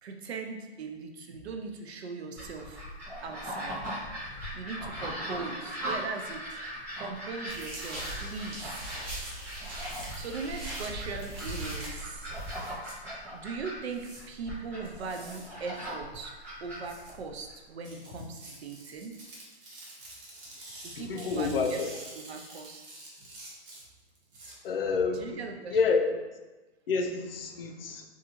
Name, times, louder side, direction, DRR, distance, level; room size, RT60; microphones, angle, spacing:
voice 1, 0.0-2.8 3.2-4.2 4.5-9.0 10.1-12.3 13.3-16.3 16.6-19.1 20.8-21.8 22.1-22.8 25.1-25.8, right 4 dB, 75° right, 4 dB, 0.5 m, -40 dB
sound 1, 2.4-17.5, equal, 5° right, 1.1 m, -40 dB
sound 2, 7.5-12.7, right 1 dB, 20° right, 0.6 m, -39 dB
sound 3, 7.8-8.1 9.8-10.0 10.8-10.9 11.8-11.9 12.8-12.9 13.9-14.2 14.9-15.5 16.8-17.1 17.8-24.5, right 2 dB, 55° right, 0.9 m, -48 dB
voice 2, 21.0-21.9 24.6-25.4 25.7-26.0 26.9-28.0, left 5 dB, 60° left, 3 dB, 0.5 m, -28 dB
2.6 x 2.3 x 2.9 m, 1.1 s
hypercardioid pair, 155°, 33 cm